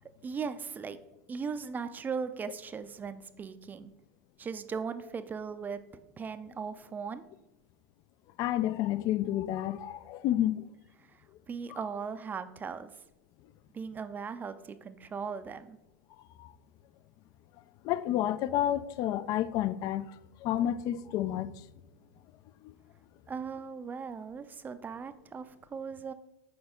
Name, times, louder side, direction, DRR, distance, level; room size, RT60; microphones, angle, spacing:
voice 1, 0.2-1.0 1.3-3.9 4.4-5.8 6.2-7.2 11.1-12.9 13.7-15.8 23.3-26.1, right 5 dB, 20° right, 0.4 m, -38 dB
voice 2, 8.4-10.6 11.7-11.8 16.4-16.5 17.8-20.1 20.4-21.5 22.6-22.7, left 12 dB, 45° left, 0.3 m, -30 dB
6.2 x 4.2 x 3.6 m
hypercardioid pair, 100°, 9 cm